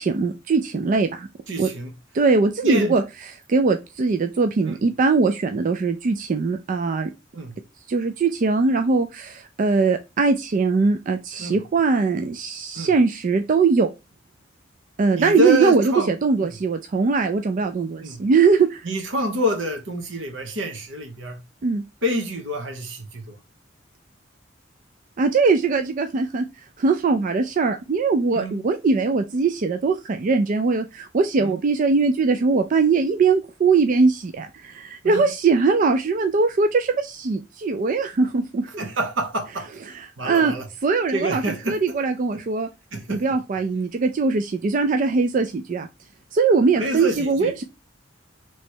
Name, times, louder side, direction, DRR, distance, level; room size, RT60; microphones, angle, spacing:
voice 1, 0.0-1.3 1.6-1.7 2.1-3.0 3.5-7.1 7.9-13.9 15.0-18.9 21.6-21.8 25.2-26.4 26.8-38.7 39.9-40.5 40.8-42.7 43.1-45.9 46.3-47.6, right 4 dB, 45° right, 0.3 m, -21 dB
voice 2, 1.5-1.9 2.6-2.9 4.6-4.8 7.3-7.6 11.4-11.6 12.7-12.9 15.1-16.1 18.0-18.2 18.8-21.4 22.0-23.4 28.3-28.6 31.4-31.6 35.0-35.3 38.8-39.7 40.2-40.7 41.1-42.0 42.3-42.4 42.9-43.2 46.8-47.6, equal, 75° right, 1.0 m, -27 dB
3.2 x 3.1 x 4.4 m
head